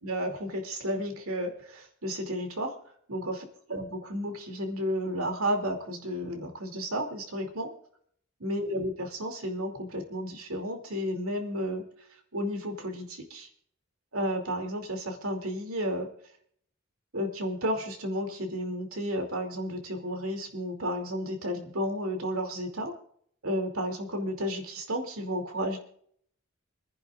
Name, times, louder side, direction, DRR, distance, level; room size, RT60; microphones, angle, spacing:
voice 1, 0.0-2.8 3.1-3.4 3.7-7.7 8.4-11.8 12.3-13.5 14.1-16.1 17.1-22.9 23.4-25.8, equal, 70° right, 4 dB, 2.8 m, -32 dB
28.0 x 10.5 x 2.5 m, 0.63 s
head